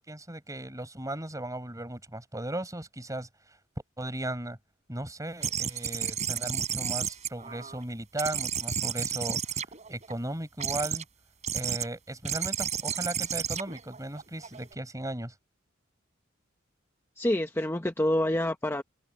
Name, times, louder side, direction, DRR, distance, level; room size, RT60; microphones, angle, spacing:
voice 1, 0.0-3.3 4.0-4.6 4.9-9.4 9.9-11.0 11.5-15.3, right 1 dB, 15° right, 6.7 m, -36 dB
sound 1, 5.4-7.8 8.2-10.1 10.6-11.0 11.4-11.9 12.2-14.7, right 8 dB, 35° right, 3.9 m, -32 dB
voice 2, 17.2-18.8, left 1 dB, 10° left, 0.8 m, -27 dB
open air
head